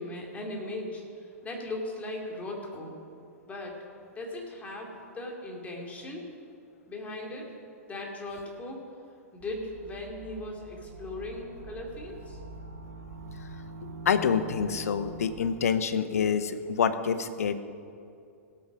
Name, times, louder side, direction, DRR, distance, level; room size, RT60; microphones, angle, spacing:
voice 1, 0.0-3.0 3.4-3.8 4.1-6.3 6.9-7.5 7.9-8.8 9.3-12.4, left 2 dB, 15° left, -1 dB, 2.8 m, -38 dB
sound 1, 9.4-15.7, right 2 dB, 65° right, 2.8 m, -44 dB
voice 2, 14.1-17.6, left 7 dB, 70° left, 12 dB, 0.9 m, -27 dB
17.0 x 8.5 x 5.1 m, 2.5 s
hypercardioid pair, 110°, 8 cm